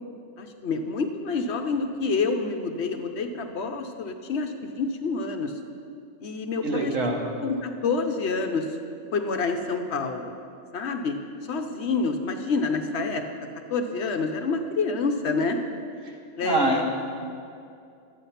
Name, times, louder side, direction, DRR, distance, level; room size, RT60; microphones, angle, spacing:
voice 1, 0.4-5.5 6.2-6.9 7.4-8.7 9.1-10.3 10.7-11.2 11.5-13.2 13.7-15.6 16.4-16.8, left 4 dB, 60° left, 5 dB, 0.9 m, -27 dB
voice 2, 6.6-7.2 16.4-16.8, right 2 dB, 75° right, 0 dB, 1.7 m, -24 dB
11.5 x 8.4 x 5.7 m, 2.4 s
omnidirectional pair, 1.3 m